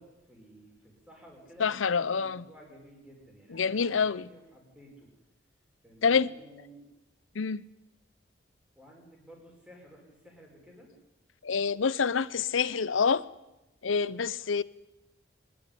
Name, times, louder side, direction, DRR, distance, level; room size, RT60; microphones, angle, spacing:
voice 1, 0.0-5.1 5.8-6.9 8.8-10.9, equal, 5° right, 5.3 m, -53 dB
voice 2, 1.6-2.4 3.5-4.3 6.0-6.3 7.3-7.7 11.4-13.2 13.8-14.6, left 5 dB, 85° left, 0.7 m, -27 dB
24.0 x 12.0 x 9.9 m
head